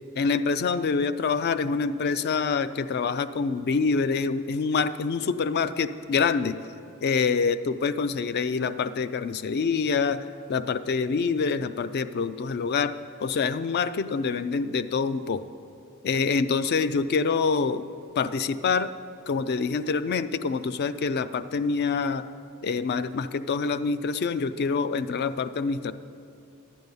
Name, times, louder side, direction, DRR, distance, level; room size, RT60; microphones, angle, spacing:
voice 1, 0.2-6.6 7.0-15.4 16.0-17.9 18.2-18.9 19.3-22.3 22.6-25.9, left 5 dB, 45° left, 14 dB, 0.3 m, -26 dB
11.0 x 9.3 x 5.4 m, 2.7 s
head